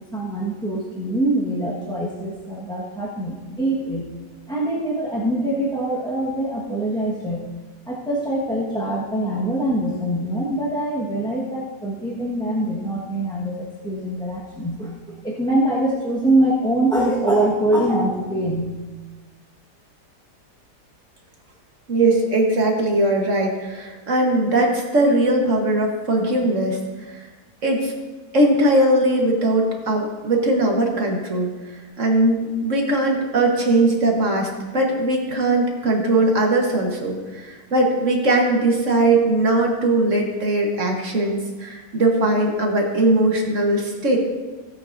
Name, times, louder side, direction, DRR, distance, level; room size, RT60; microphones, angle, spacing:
voice 1, 0.1-4.1 4.5-7.4 7.9-14.9 15.2-18.7, right 1 dB, 5° left, -6 dB, 1.2 m, -23 dB
voice 2, 21.9-26.8 27.6-27.9 28.3-31.5 32.0-44.2, right 1 dB, 50° right, 0 dB, 1.6 m, -20 dB
17.0 x 8.1 x 2.6 m, 1.3 s
omnidirectional pair, 1.8 m